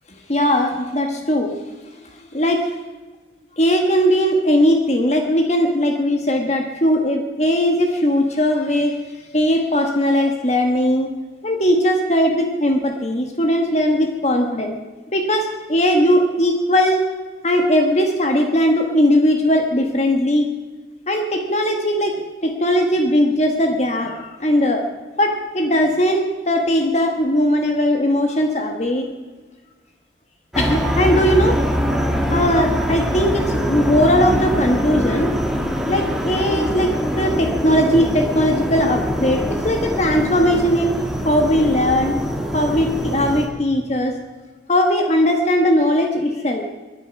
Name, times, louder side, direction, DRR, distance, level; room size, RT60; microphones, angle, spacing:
voice 1, 0.3-1.6 2.3-2.7 3.6-9.0 9.3-11.1 11.4-14.7 15.1-17.0 17.4-20.5 21.1-24.9 25.2-29.1 30.6-31.6 32.3-35.3 35.9-41.0 41.2-42.2 42.5-44.2 44.7-46.7, equal, 40° left, 4 dB, 1.3 m, -19 dB
sound 1, 30.5-43.5, equal, ahead, 1.9 m, -23 dB
22.5 x 10.0 x 5.9 m, 1.3 s
head